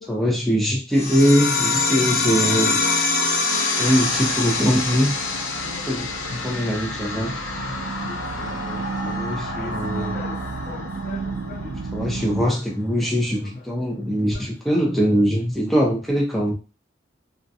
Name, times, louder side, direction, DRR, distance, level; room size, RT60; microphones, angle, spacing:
voice 1, 0.1-2.8 3.8-5.1 5.9-7.3 8.4-10.2 11.9-16.5, equal, ahead, -3 dB, 0.6 m, -22 dB
sound 1, 0.9-12.0, left 3 dB, 90° left, 0.6 m, -26 dB
sound 2, 4.1-12.4, right 4 dB, 80° right, 0.4 m, -33 dB
voice 2, 5.6-6.4 7.0-8.6 9.0-9.2 9.6-10.4 10.7-12.3 14.3-14.4, left 3 dB, 45° left, 2 dB, 0.3 m, -40 dB
2.5 x 2.1 x 2.7 m, 0.32 s
head